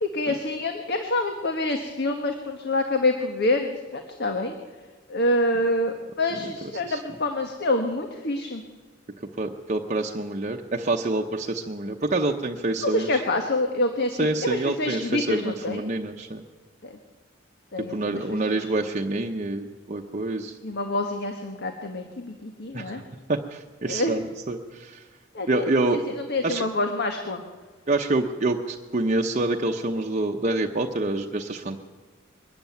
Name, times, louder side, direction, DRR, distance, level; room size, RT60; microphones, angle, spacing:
voice 1, 0.0-4.5 5.1-8.6 12.8-15.8 16.8-17.0 17.7-18.6 20.6-23.0 23.8-24.2 25.3-26.0 26.3-27.4, left 2 dB, 55° left, 5 dB, 1.5 m, -27 dB
voice 2, 9.4-13.2 14.2-16.4 17.8-20.6 22.7-23.0 23.3-25.0 25.5-26.0 26.4-26.6 27.9-31.8, right 2 dB, 40° right, 2 dB, 0.9 m, -27 dB
22.0 x 13.0 x 9.3 m, 1.4 s
head